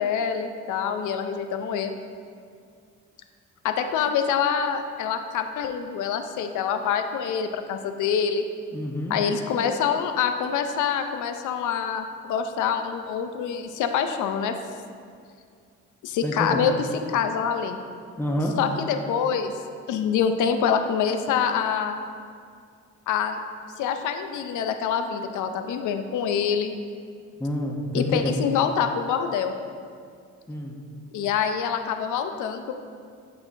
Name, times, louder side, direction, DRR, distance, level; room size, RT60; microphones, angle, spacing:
voice 1, 0.0-2.0 3.6-8.4 9.1-14.6 16.0-16.7 17.1-17.8 18.6-19.5 19.9-22.0 23.1-23.4 23.8-26.7 27.9-29.6 31.1-32.7, left 7 dB, 80° left, 7 dB, 0.5 m, -25 dB
voice 2, 8.7-9.2 16.2-16.6 18.2-18.5 27.4-28.4 30.5-30.8, left 1 dB, 5° left, 0 dB, 0.8 m, -27 dB
8.3 x 4.4 x 2.6 m, 2.2 s
cardioid pair, 90°, 30 cm